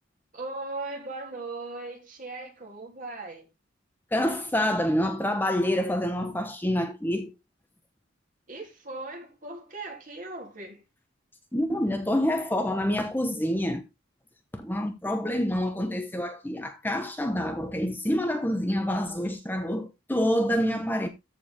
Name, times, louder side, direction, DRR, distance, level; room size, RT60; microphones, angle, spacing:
voice 1, 0.3-3.5 8.5-10.8, right 2 dB, 45° right, 3.2 m, -38 dB
voice 2, 4.1-7.3 11.5-13.8 14.5-21.1, left 1 dB, 10° left, 0.9 m, -27 dB
14.0 x 4.7 x 3.6 m
head